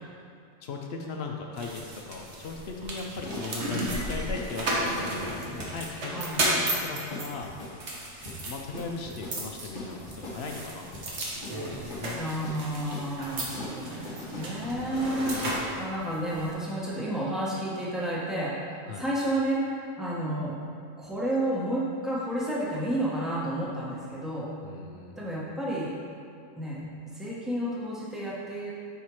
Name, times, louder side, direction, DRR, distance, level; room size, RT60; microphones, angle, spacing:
voice 1, 0.6-6.1 6.4-7.5 8.5-11.1 11.5-12.2 14.6-14.9 18.9-19.0 24.6-25.2, left 4 dB, 60° left, 1 dB, 0.7 m, -38 dB
sound 1, 1.6-16.5, right 1 dB, 60° right, 1.2 m, -34 dB
sound 2, 3.0-15.7, left 1 dB, 40° left, 1.2 m, -43 dB
voice 2, 6.1-6.4 12.1-15.5 15.7-20.5 21.0-24.5 25.1-25.9 26.6-28.7, right 1 dB, ahead, -7 dB, 0.9 m, -31 dB
5.7 x 4.3 x 4.6 m, 2.5 s
omnidirectional pair, 1.4 m